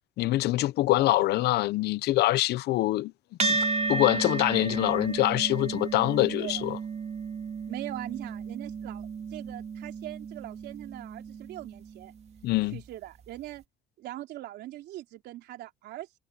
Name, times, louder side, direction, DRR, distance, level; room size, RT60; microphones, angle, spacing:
voice 1, 0.2-3.1 3.5-3.6 3.9-6.8 12.4-12.8, left 17 dB, 75° left, 0.8 m, -24 dB
sound 1, 3.4-12.1, right 4 dB, 40° right, 2.6 m, -33 dB
voice 2, 7.7-12.1 12.7-13.6 14.0-16.2, right 15 dB, 80° right, 3.5 m, -41 dB
cardioid pair, 110°, 17 cm